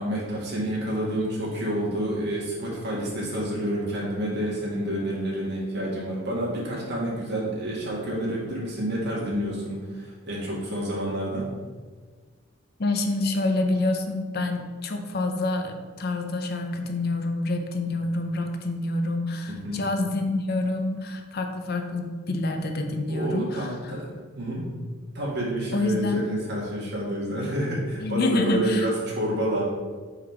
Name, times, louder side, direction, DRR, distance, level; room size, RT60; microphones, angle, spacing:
voice 1, 0.0-11.5 19.5-19.8 23.1-24.1 24.4-24.7 25.1-29.6, equal, 55° right, -5 dB, 2.0 m, -29 dB
voice 2, 12.8-24.0 25.7-26.2 28.0-28.9, left 2 dB, 50° left, 5 dB, 0.6 m, -27 dB
5.7 x 4.8 x 4.6 m, 1.5 s
head